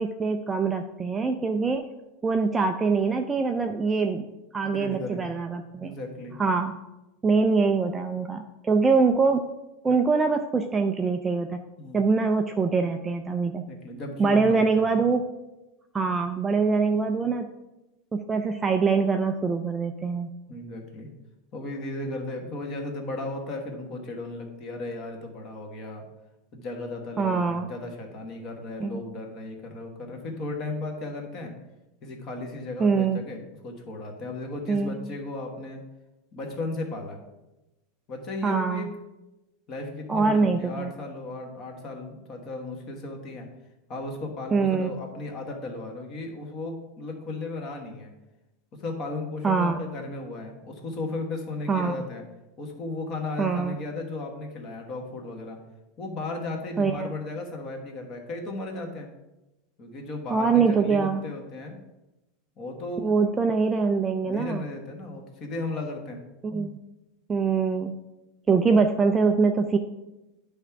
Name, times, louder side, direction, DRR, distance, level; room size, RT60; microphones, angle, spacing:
voice 1, 0.0-1.9 2.2-4.3 4.5-5.9 6.4-6.7 7.2-9.5 9.8-11.6 11.9-13.6 14.2-15.2 15.9-17.5 18.1-20.3 27.2-27.7 28.8-29.0 32.8-33.2 34.7-35.0 38.4-38.9 40.1-40.9 44.5-45.0 49.4-49.8 51.7-51.9 53.4-53.8 56.8-57.1 60.3-61.2 63.0-64.6 66.4-66.8 67.3-68.0 68.5-69.8, right 4 dB, 10° right, 5 dB, 0.3 m, -24 dB
voice 2, 4.6-5.3 5.8-6.4 11.8-12.0 13.7-14.9 20.5-21.1 21.5-26.0 26.5-31.5 32.0-35.8 36.3-37.2 38.1-38.9 39.7-43.5 43.9-48.1 48.8-52.2 52.6-55.6 56.0-59.1 59.8-61.8 62.6-63.1 64.1-66.2, left 2 dB, 25° left, 2 dB, 1.3 m, -35 dB
10.5 x 3.5 x 5.8 m, 1.0 s
supercardioid pair, 175°, 0 cm